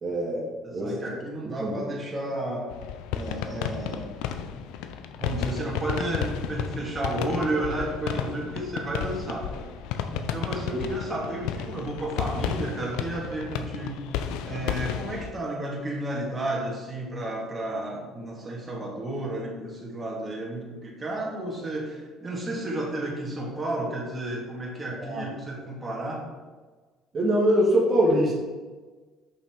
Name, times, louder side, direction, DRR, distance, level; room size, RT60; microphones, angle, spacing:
voice 1, 0.0-1.2 1.6-2.0 10.7-10.8 25.0-25.3 27.1-28.4, right 1 dB, 40° right, -4 dB, 1.9 m, -24 dB
voice 2, 0.6-2.7 3.1-4.2 5.2-9.7 10.1-14.0 14.4-26.3, right 1 dB, 20° right, -3 dB, 2.1 m, -32 dB
sound 1, 2.7-15.3, left 8 dB, 80° left, 0.5 m, -32 dB
5.6 x 5.6 x 4.6 m, 1.4 s
supercardioid pair, 80°, 0 cm